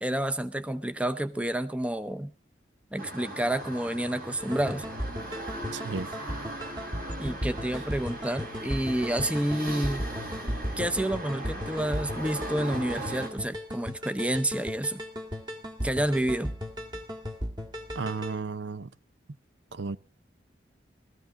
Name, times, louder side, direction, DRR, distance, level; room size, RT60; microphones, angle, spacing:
voice 1, 0.0-2.3 2.9-4.8 7.2-10.1 10.8-15.0 15.8-16.5, right 1 dB, 5° right, 0.7 m, -29 dB
sound 1, 3.0-13.3, right 1 dB, 50° right, 4.6 m, -39 dB
sound 2, 4.4-18.4, equal, 25° right, 1.9 m, -36 dB
voice 2, 5.7-6.1 18.0-18.9 19.7-20.0, right 4 dB, 80° right, 0.7 m, -33 dB
18.5 x 14.0 x 3.7 m
head